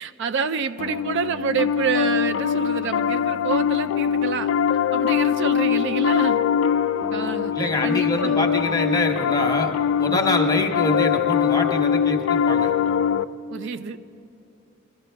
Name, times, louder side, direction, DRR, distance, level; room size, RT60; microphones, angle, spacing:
voice 1, 0.0-4.5 4.9-6.4 7.1-8.4 10.0-10.3 13.5-14.0, right 6 dB, 60° right, 11 dB, 0.4 m, -28 dB
Piano, 0.8-13.2, left 8 dB, 65° left, 0.3 m, -22 dB
voice 2, 7.5-9.7 10.0-12.7, left 1 dB, 20° left, 4 dB, 1.1 m, -25 dB
22.0 x 14.0 x 3.4 m, 2.9 s
head